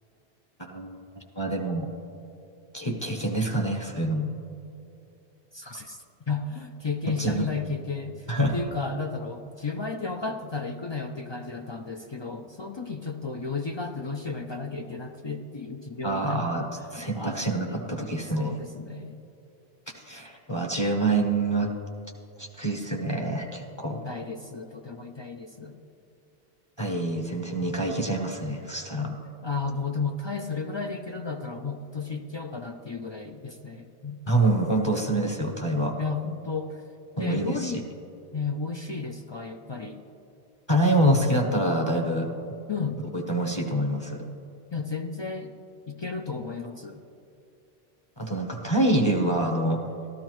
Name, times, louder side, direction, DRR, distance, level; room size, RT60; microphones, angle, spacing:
voice 1, 0.6-1.0 1.3-1.9 2.7-4.3 7.2-7.5 8.3-8.6 16.0-16.7 16.9-18.5 20.0-21.7 22.4-24.1 26.8-29.2 34.3-35.9 37.2-37.8 40.7-42.3 43.1-44.2 48.2-49.8, right 1 dB, 30° left, 1 dB, 0.8 m, -26 dB
voice 2, 5.5-16.4 17.1-17.4 17.7-19.1 24.0-25.7 29.4-34.2 36.0-36.8 37.2-37.9 38.3-40.0 42.7-43.0 44.7-45.5 45.9-47.0, left 4 dB, 50° left, 5 dB, 0.3 m, -33 dB
13.0 x 13.0 x 3.1 m, 2.7 s
omnidirectional pair, 1.0 m